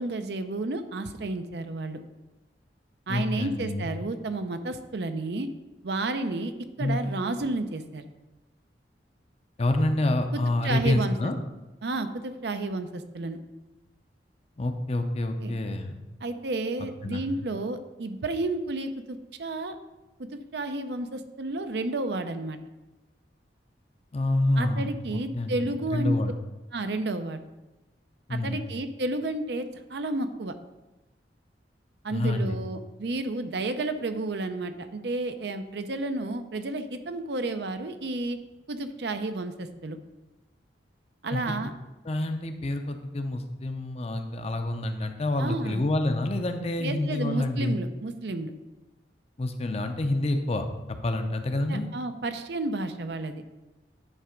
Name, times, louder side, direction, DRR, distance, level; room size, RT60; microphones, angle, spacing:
voice 1, 0.0-2.0 3.1-5.5 5.8-6.5 6.8-8.0 10.3-11.3 11.8-13.4 15.4-15.5 16.2-19.7 20.3-22.6 24.6-26.2 26.7-27.4 28.3-30.5 32.0-38.4 38.7-40.0 41.2-41.7 45.4-45.8 46.8-48.5 51.7-53.4, right 2 dB, 65° right, 9 dB, 0.6 m, -31 dB
voice 2, 3.1-3.9 6.8-7.0 9.6-11.4 14.6-16.0 16.8-17.2 24.1-26.3 28.3-28.6 32.1-32.6 41.3-41.4 42.0-47.8 49.4-50.6 51.0-51.9, left 1 dB, 35° left, 7 dB, 0.6 m, -27 dB
9.8 x 3.3 x 5.0 m, 1.1 s
head